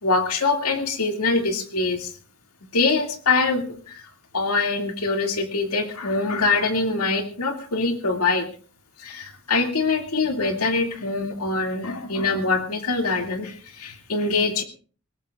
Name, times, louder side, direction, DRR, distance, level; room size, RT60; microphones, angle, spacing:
voice 1, 0.0-2.1 2.7-4.0 4.3-8.5 9.0-14.6, left 3 dB, 85° left, 4 dB, 2.3 m, -24 dB
22.0 x 18.5 x 2.4 m, 0.40 s
head